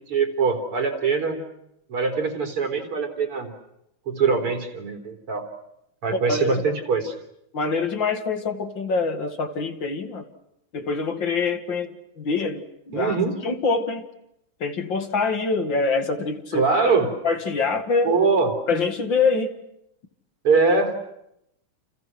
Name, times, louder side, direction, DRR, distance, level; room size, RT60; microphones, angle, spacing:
voice 1, 0.1-1.4 1.9-3.5 4.1-5.5 6.0-7.1 12.9-13.4 16.5-17.1 18.0-18.5 20.4-20.9, right 4 dB, 85° right, 3 dB, 4.6 m, -22 dB
voice 2, 6.3-6.6 7.5-10.2 10.7-13.2 13.4-14.1 14.6-16.7 17.2-18.1 18.7-19.5, left 4 dB, 60° left, 6 dB, 2.8 m, -25 dB
30.0 x 29.0 x 6.1 m, 0.80 s
omnidirectional pair, 2.4 m